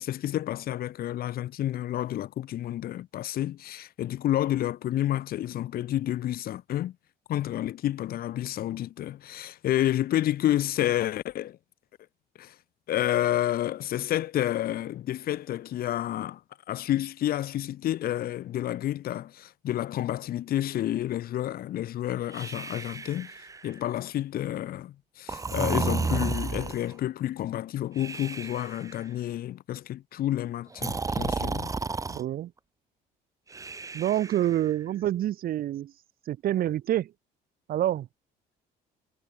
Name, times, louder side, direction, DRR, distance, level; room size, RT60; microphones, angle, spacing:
voice 1, 0.0-6.9 7.3-11.6 12.4-12.5 12.9-16.4 16.7-23.3 23.6-31.7, left 12 dB, 60° left, 1.6 m, -30 dB
Breathing, 22.3-23.9 25.3-26.9 28.0-28.9 30.7-32.2 33.5-34.7, right 4 dB, 20° right, 1.0 m, -32 dB
voice 2, 32.1-32.5 33.9-35.9 36.3-37.1 37.7-38.1, right 12 dB, 60° right, 1.3 m, -27 dB
cardioid pair, 110°, 17 cm